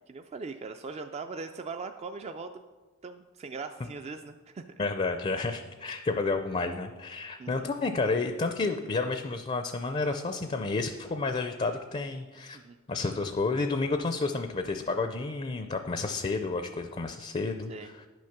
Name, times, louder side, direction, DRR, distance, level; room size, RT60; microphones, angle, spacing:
voice 1, 0.1-2.5 3.0-4.6 7.4-7.7 12.5-12.8 17.7-17.9, right 4 dB, 30° right, 6 dB, 0.3 m, -40 dB
voice 2, 4.8-12.6 12.9-18.0, left 3 dB, 30° left, 7 dB, 0.5 m, -30 dB
10.5 x 6.2 x 5.9 m, 1.3 s
head